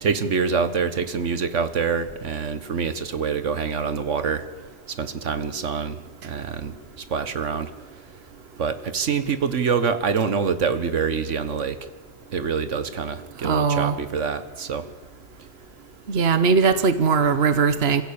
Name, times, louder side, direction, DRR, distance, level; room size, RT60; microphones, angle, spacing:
voice 1, 0.0-4.5 4.9-7.7 8.6-11.8 12.3-14.9, right 6 dB, 75° right, 11 dB, 1.5 m, -26 dB
voice 2, 13.4-14.0 16.1-18.0, right 5 dB, 55° right, 11 dB, 1.3 m, -20 dB
27.0 x 15.5 x 8.7 m, 1.4 s
omnidirectional pair, 1.3 m